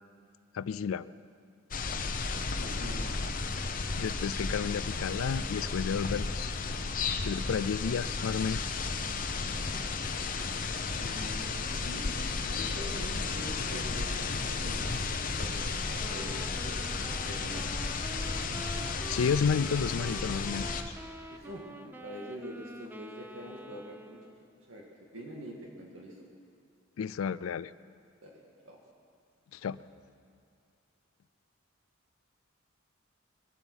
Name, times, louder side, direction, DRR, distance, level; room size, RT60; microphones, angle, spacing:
voice 1, 0.5-1.1 4.0-6.5 7.2-8.7 19.1-20.9 27.0-27.7 29.5-29.8, left 6 dB, 85° left, 17 dB, 0.4 m, -31 dB
sound 1, 1.7-20.8, left 4 dB, 45° left, 0.8 m, -33 dB
voice 2, 2.6-3.3 10.8-16.4 16.6-16.8 17.2-17.7 21.3-24.2 24.7-24.9 25.1-26.3 28.2-28.8, equal, 85° right, -2 dB, 2.0 m, -45 dB
Wind instrument woodwind instrument, 16.0-24.5, right 1 dB, 10° right, 0.5 m, -46 dB
22.0 x 9.0 x 6.2 m, 2.3 s
head